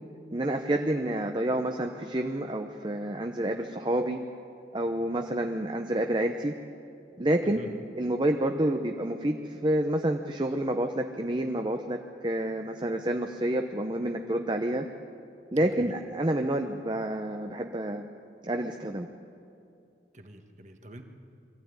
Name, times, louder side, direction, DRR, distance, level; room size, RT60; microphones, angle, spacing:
voice 1, 0.3-4.2 4.7-6.5 7.2-7.6 7.9-14.9 15.5-18.1 18.4-19.1, right 1 dB, 25° right, 4 dB, 0.8 m, -28 dB
voice 2, 15.5-15.9 20.1-21.0, right 1 dB, 40° right, 5 dB, 1.6 m, -47 dB
23.5 x 14.5 x 9.6 m, 2.5 s
head